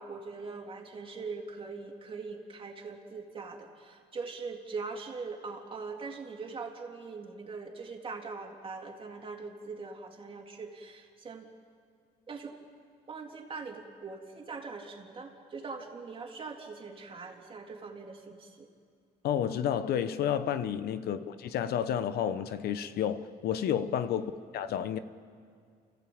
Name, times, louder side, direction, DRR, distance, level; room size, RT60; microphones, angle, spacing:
voice 1, 0.0-11.5 12.3-12.6 13.1-18.7 21.0-21.2 24.1-24.3, right 4 dB, 30° right, 3.1 m, -42 dB
voice 2, 19.2-25.0, left 9 dB, 70° left, 1.0 m, -31 dB
29.0 x 15.0 x 8.7 m
cardioid pair, 110°, 17 cm